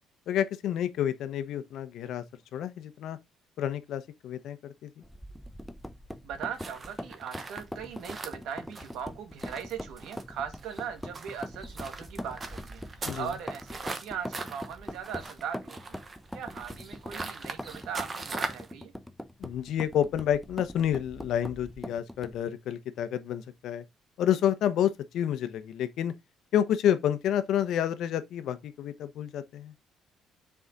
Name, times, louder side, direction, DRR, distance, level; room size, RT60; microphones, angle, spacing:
voice 1, 0.3-2.2 2.5-3.2 3.6-5.0 13.0-13.3 19.4-23.8 24.2-26.1 26.5-29.7, left 10 dB, 65° left, 1.0 m, -29 dB
sound 1, 5.0-22.5, left 1 dB, 5° left, 0.7 m, -42 dB
voice 2, 6.2-16.0 16.3-18.9, right 8 dB, 70° right, 1.6 m, -39 dB
sound 2, 6.6-18.7, right 3 dB, 25° right, 1.0 m, -41 dB
6.9 x 4.8 x 3.7 m
cardioid pair, 145°, 0 cm